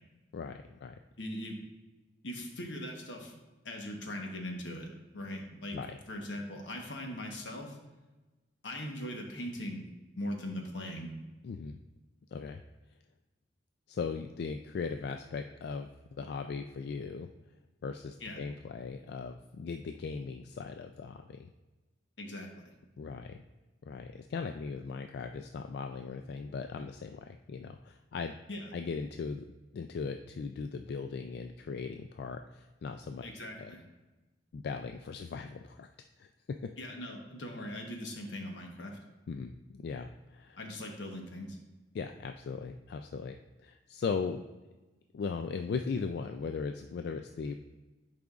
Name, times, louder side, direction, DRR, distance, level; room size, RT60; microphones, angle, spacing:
voice 1, 0.3-1.0 5.7-6.0 11.4-11.8 12.3-12.6 13.9-17.3 17.8-21.5 23.0-23.4 23.8-28.4 28.7-29.4 29.7-33.3 33.6-33.7 34.5-35.9 36.2-36.3 39.3-40.6 41.9-44.4 45.1-47.5, left 5 dB, 60° left, 6 dB, 0.3 m, -38 dB
voice 2, 1.2-1.6 2.2-3.4 3.6-5.8 6.1-7.8 8.6-9.8 10.2-11.1 18.2-18.4 22.2-22.7 28.5-28.7 33.2-33.8 36.8-39.0 40.5-41.6, left 1 dB, 85° left, 2 dB, 1.1 m, -40 dB
10.5 x 4.9 x 2.4 m, 1.1 s
head